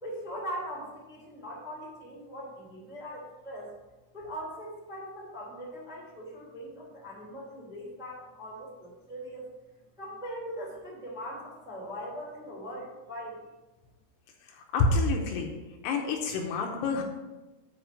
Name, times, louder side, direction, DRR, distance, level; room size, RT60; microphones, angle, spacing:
voice 1, 0.0-3.7 4.1-9.4 10.0-13.4, equal, ahead, -5 dB, 1.4 m, -40 dB
voice 2, 14.4-15.5 15.8-17.0, left 3 dB, 80° left, 2 dB, 2.7 m, -28 dB
7.7 x 5.9 x 5.5 m, 1.1 s
omnidirectional pair, 5.2 m